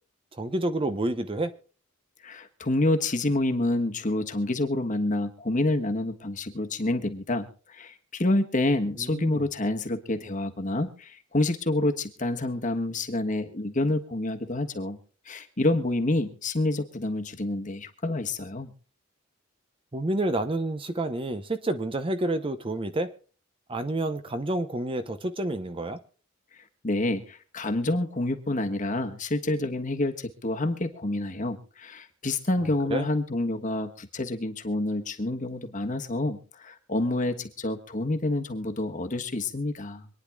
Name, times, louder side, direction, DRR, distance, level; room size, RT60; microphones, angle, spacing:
voice 1, 0.3-1.5 9.0-9.4 19.9-23.1 23.7-26.0 32.9-33.1, right 1 dB, 25° right, 0.8 m, -29 dB
voice 2, 2.2-15.0 15.3-18.7 26.8-40.1, left 2 dB, 40° left, 1.4 m, -28 dB
26.0 x 10.0 x 2.3 m
head